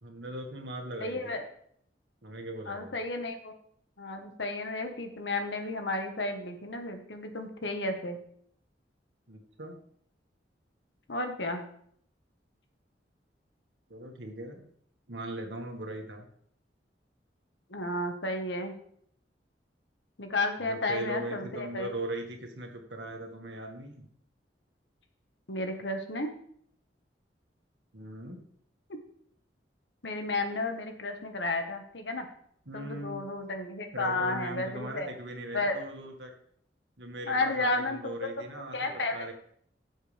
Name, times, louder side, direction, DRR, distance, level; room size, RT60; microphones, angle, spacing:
voice 1, 0.0-1.3 2.2-3.0 9.3-9.7 13.9-14.7 15.1-16.3 20.6-24.0 27.9-28.4 32.7-33.2 33.9-36.3 37.0-39.3, right 1 dB, 80° right, 3 dB, 1.9 m, -39 dB
voice 2, 1.0-1.5 2.6-3.5 4.0-8.2 11.1-11.7 17.7-18.7 20.2-21.9 25.5-26.3 30.0-32.3 32.7-35.1 35.5-35.8 37.2-38.4 38.7-39.3, left 2 dB, 80° left, 5 dB, 1.6 m, -32 dB
16.5 x 7.4 x 3.5 m, 0.66 s
head